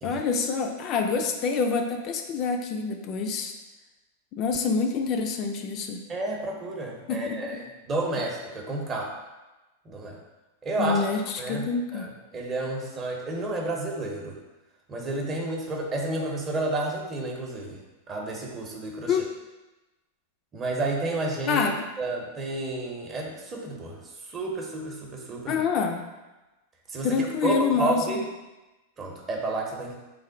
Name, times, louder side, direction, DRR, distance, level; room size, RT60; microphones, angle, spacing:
voice 1, 0.0-3.5 4.3-6.0 7.1-7.4 10.8-12.1 19.0-19.3 21.5-21.8 25.5-26.0 27.0-28.2, left 5 dB, 45° left, 4 dB, 0.3 m, -26 dB
voice 2, 6.1-9.1 9.8-10.2 10.6-11.1 11.4-14.4 14.9-17.8 18.1-19.2 20.5-21.6 22.0-24.0 24.3-25.6 26.9-28.3 29.0-30.0, right 2 dB, 30° right, 0 dB, 0.7 m, -31 dB
3.2 x 2.2 x 3.7 m, 1.1 s
hypercardioid pair, 105°, 0 cm